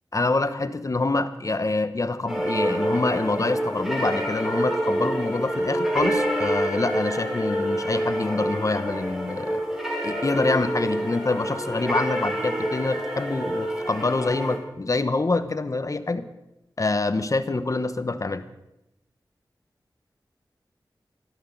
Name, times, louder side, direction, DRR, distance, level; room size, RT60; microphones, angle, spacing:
voice 1, 0.1-9.6 10.0-16.3 16.8-18.4, left 3 dB, 45° left, 11 dB, 1.0 m, -26 dB
sound 1, 2.3-14.6, equal, 10° right, 4.3 m, -27 dB
Bass guitar, 6.0-8.6, equal, 35° right, 7.1 m, -37 dB
13.5 x 13.0 x 6.9 m, 0.91 s
wide cardioid pair, 75°, 8 cm